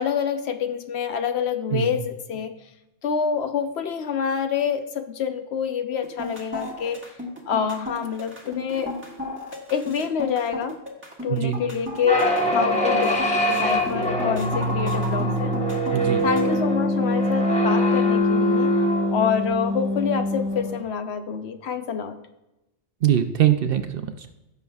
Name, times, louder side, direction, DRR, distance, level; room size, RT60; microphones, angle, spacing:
voice 1, 0.0-2.5 3.0-7.0 7.5-8.9 9.7-10.8 11.2-13.1 13.5-15.5 16.2-18.7 19.1-22.2, left 7 dB, 65° left, 8 dB, 0.9 m, -27 dB
sound 1, 6.0-16.6, left 1 dB, 10° right, 1.5 m, -35 dB
sound 2, 12.0-20.8, left 1 dB, 5° left, 1.2 m, -23 dB
voice 2, 15.9-16.2 23.0-24.3, right 11 dB, 60° right, 8 dB, 0.7 m, -22 dB
15.5 x 6.9 x 2.3 m, 0.95 s
omnidirectional pair, 1.2 m